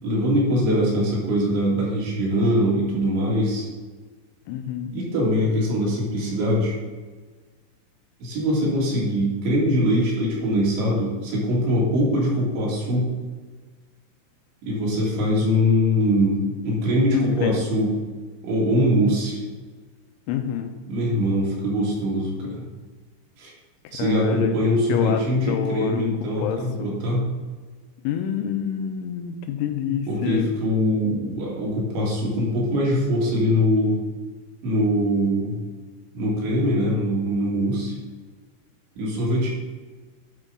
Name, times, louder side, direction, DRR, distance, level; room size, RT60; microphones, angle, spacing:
voice 1, 0.0-3.7 4.9-6.7 8.2-13.1 14.6-17.9 18.4-19.4 20.9-22.7 23.4-23.5 23.9-27.2 30.1-34.0 34.6-35.6 36.1-38.0 39.0-39.5, equal, 75° right, -5 dB, 4.2 m, -22 dB
voice 2, 4.5-4.9 17.1-17.7 20.3-20.7 23.9-26.9 28.0-30.5, left 8 dB, 90° left, 7 dB, 3.1 m, -28 dB
11.0 x 4.5 x 3.8 m, 1.4 s
omnidirectional pair, 5.4 m